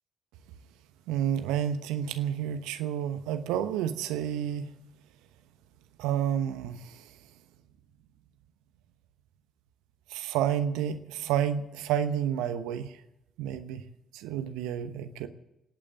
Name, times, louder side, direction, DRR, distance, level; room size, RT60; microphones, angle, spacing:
voice 1, 1.1-4.7 6.0-7.1 10.1-12.9 13.4-13.8 14.1-15.3, right 10 dB, 70° right, 10 dB, 1.0 m, -30 dB
20.0 x 8.8 x 7.7 m, 0.88 s
figure-of-eight pair, 45°, 0 cm